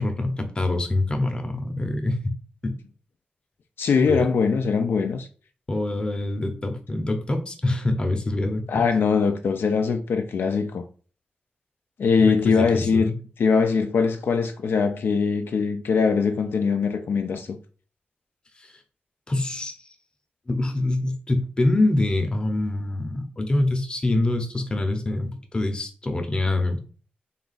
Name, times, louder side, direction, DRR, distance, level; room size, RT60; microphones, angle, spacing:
voice 1, 0.0-2.3 2.6-2.7 4.1-4.3 5.7-8.6 12.2-13.1 19.3-19.8 20.5-26.8, left 2 dB, 25° left, 0.7 m, -25 dB
voice 2, 3.8-5.3 8.7-10.8 12.0-13.1 13.4-17.6, left 5 dB, 85° left, 0.4 m, -22 dB
3.8 x 2.4 x 3.9 m
wide cardioid pair, 110°, 4 cm